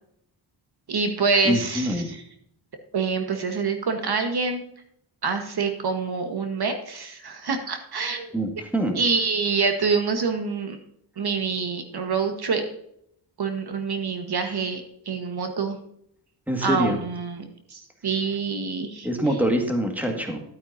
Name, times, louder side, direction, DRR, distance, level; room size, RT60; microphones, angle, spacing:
voice 1, 0.9-2.2 2.9-4.6 5.2-8.3 8.9-10.8 11.2-12.6 13.4-15.8 16.6-19.1, right 4 dB, 55° right, 5 dB, 1.2 m, -26 dB
voice 2, 1.4-2.1 8.3-9.0 16.5-17.0 19.0-20.4, right 1 dB, 5° right, 3 dB, 1.7 m, -24 dB
12.0 x 9.1 x 2.6 m, 0.72 s
wide cardioid pair, 110°, 47 cm